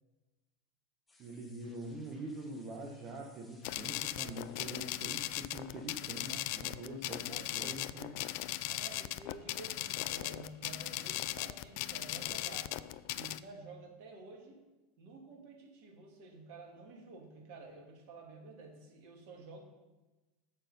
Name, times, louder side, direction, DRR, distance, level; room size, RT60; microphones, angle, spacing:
sound 1, 1.1-6.7, left 2 dB, 15° left, 1.8 m, -65 dB
voice 1, 1.2-8.1, right 2 dB, 35° right, -1 dB, 1.3 m, -44 dB
sound 2, 3.6-13.4, left 16 dB, 55° left, 0.4 m, -38 dB
voice 2, 7.3-7.8 8.7-12.8 13.1-14.6 15.0-19.6, right 3 dB, 55° right, 2 dB, 2.3 m, -51 dB
9.0 x 6.6 x 5.5 m, 1.1 s
figure-of-eight pair, 80°, 0 cm